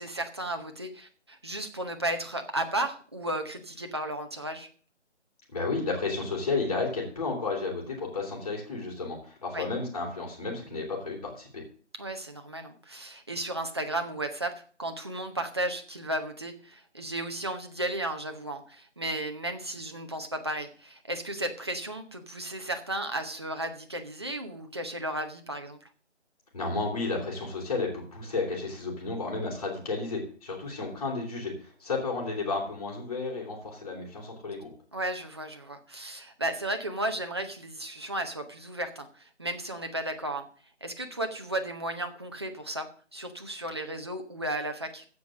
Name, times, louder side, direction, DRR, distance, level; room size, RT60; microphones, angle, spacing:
voice 1, 0.0-4.7 9.5-9.7 12.0-25.9 34.9-40.5 40.8-45.0, right 1 dB, 20° right, 5 dB, 0.9 m, -34 dB
voice 2, 5.5-11.6 26.5-31.5 31.8-34.7, left 3 dB, 30° left, -3 dB, 3.3 m, -32 dB
15.0 x 5.2 x 6.4 m, 0.43 s
figure-of-eight pair, 165°, 36 cm